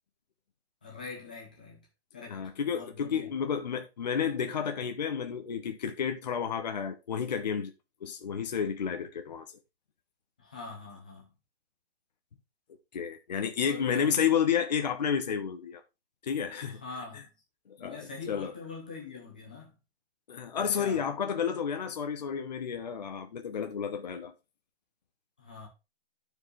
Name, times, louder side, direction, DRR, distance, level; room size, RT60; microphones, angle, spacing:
voice 1, 0.8-1.8 2.1-2.4 2.7-3.3 10.4-11.3 13.6-14.1 16.6-17.3 17.8-19.7 20.5-21.0 25.4-25.7, left 4 dB, 10° left, 0.6 m, -43 dB
voice 2, 2.3-7.7 8.0-9.5 12.9-15.8 16.2-16.8 17.8-18.5 20.3-24.3, left 7 dB, 40° left, 0.8 m, -31 dB
11.0 x 4.8 x 3.1 m
hypercardioid pair, 180°, 31 cm